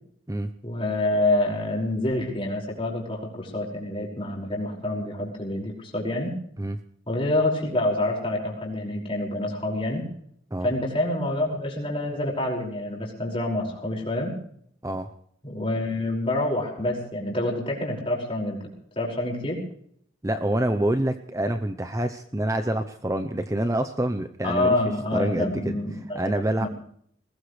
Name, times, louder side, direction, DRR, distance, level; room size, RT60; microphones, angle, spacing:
voice 1, 0.6-6.3 7.1-10.1 10.6-14.3 15.4-18.6 19.0-19.6 24.4-26.7, left 1 dB, 25° left, -2 dB, 5.4 m, -27 dB
voice 2, 20.2-24.8 25.1-26.7, right 1 dB, 15° right, 8 dB, 0.7 m, -27 dB
21.0 x 20.0 x 3.3 m, 0.66 s
head